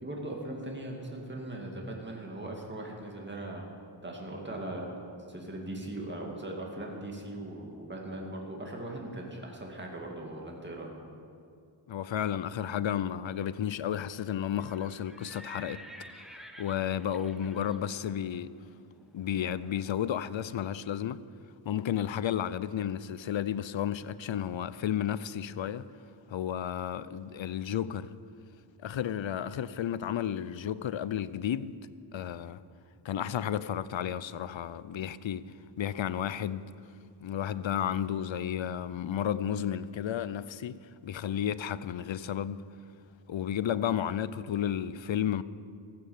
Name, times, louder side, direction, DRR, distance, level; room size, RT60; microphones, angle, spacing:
voice 1, 0.0-3.6 4.0-4.9 5.3-10.9, right 1 dB, 25° right, 2.2 m, -39 dB
voice 2, 11.9-15.8 16.6-18.5 19.1-21.2 21.7-25.8 26.3-28.1 28.8-31.8 32.1-32.6 33.0-36.6 37.2-42.6 43.3-45.4, left 9 dB, 70° left, 0.6 m, -32 dB
Livestock farm animals working animals, 14.4-20.2, equal, ahead, 1.1 m, -51 dB
15.0 x 8.6 x 7.1 m
wide cardioid pair, 65°, 47 cm